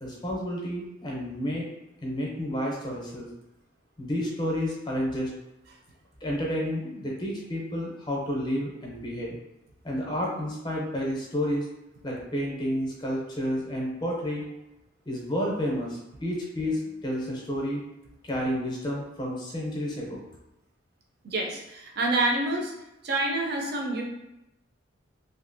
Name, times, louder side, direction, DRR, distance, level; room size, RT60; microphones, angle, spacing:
voice 1, 0.0-1.7 2.0-3.3 4.0-5.3 6.2-9.4 9.8-11.7 12.0-14.5 15.1-17.8 18.2-20.2, equal, 20° left, -3 dB, 0.6 m, -30 dB
voice 2, 21.2-22.7 23.0-24.0, right 2 dB, 50° right, 1 dB, 0.5 m, -27 dB
2.8 x 2.5 x 2.6 m, 0.93 s
head